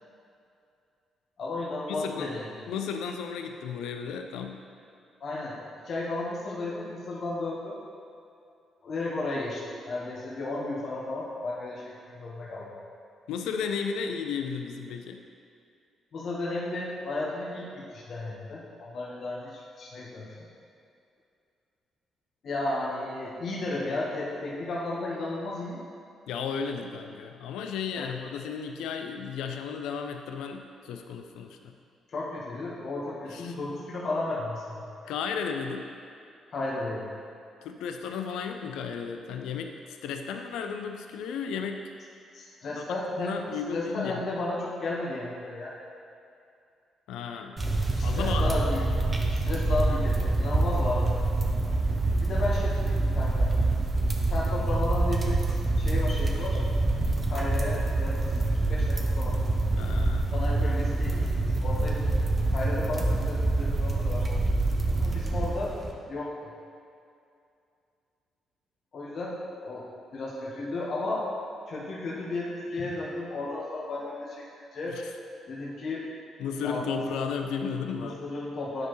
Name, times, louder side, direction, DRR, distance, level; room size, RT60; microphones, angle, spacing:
voice 1, 1.4-2.5 5.2-5.6 5.8-7.8 8.8-12.7 16.1-20.5 22.4-25.8 28.0-28.1 32.1-34.9 36.5-37.1 42.3-43.4 43.7-45.7 47.9-48.8 49.3-51.2 52.2-53.5 54.3-55.4 55.8-56.6 57.3-58.2 58.5-59.4 60.3-62.1 62.5-64.3 65.0-65.7 66.1-66.5 68.9-69.9 70.1-71.3 71.7-74.5 74.7-75.0 75.5-76.0 76.6-76.8 77.9-78.9, left 2 dB, 55° left, -6 dB, 1.3 m, -33 dB
voice 2, 1.9-2.3 2.7-4.6 13.3-15.2 26.3-31.7 33.3-33.5 35.0-35.9 37.6-41.8 42.7-42.8 43.2-44.2 47.1-47.6 48.0-48.5 48.9-49.0 59.7-60.3 74.9-75.0 76.4-78.2, left 6 dB, 90° left, 5 dB, 0.4 m, -34 dB
sound 1, 47.6-65.9, right 2 dB, 25° right, 0.8 m, -26 dB
9.5 x 4.6 x 3.1 m, 2.5 s
cardioid pair, 90°, 0 cm